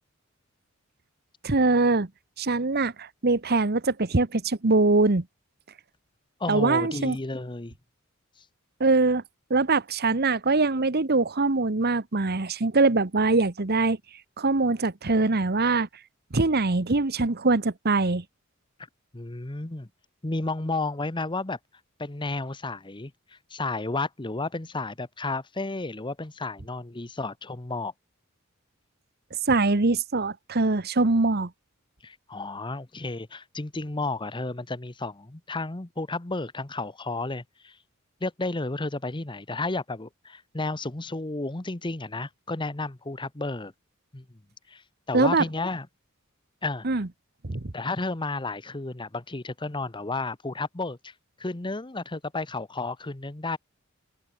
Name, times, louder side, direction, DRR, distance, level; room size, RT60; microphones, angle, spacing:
voice 1, 1.4-2.1 2.4-5.2 6.5-7.2 8.8-9.2 9.5-14.0 14.4-15.9 16.3-18.2 29.5-31.5 45.1-45.4 46.8-47.1 47.4-47.7, right 3 dB, 50° right, 1.2 m, -23 dB
voice 2, 6.4-7.7 19.1-19.9 20.2-21.6 22.0-23.1 23.5-27.9 32.0-37.8 38.2-43.7 44.1-44.2 44.7-44.8 45.1-45.9 46.6-46.9 47.7-53.6, left 2 dB, 20° left, 1.0 m, -32 dB
open air
head